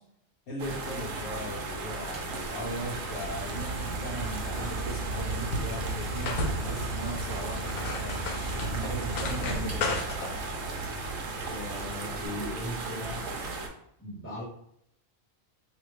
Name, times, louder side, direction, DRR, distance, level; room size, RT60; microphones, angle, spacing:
voice 1, 0.5-10.4, right 1 dB, 55° left, -3 dB, 1.2 m, -38 dB
sound 1, 0.6-13.7, right 3 dB, 85° right, 1.1 m, -36 dB
Idling, 2.1-10.2, right 2 dB, 55° right, 1.1 m, -37 dB
sound 2, 5.1-12.3, left 2 dB, 85° left, 1.0 m, -36 dB
voice 2, 11.4-13.3 14.0-14.4, left 1 dB, 10° left, -10 dB, 1.3 m, -38 dB
2.8 x 2.5 x 3.1 m, 0.72 s
omnidirectional pair, 1.4 m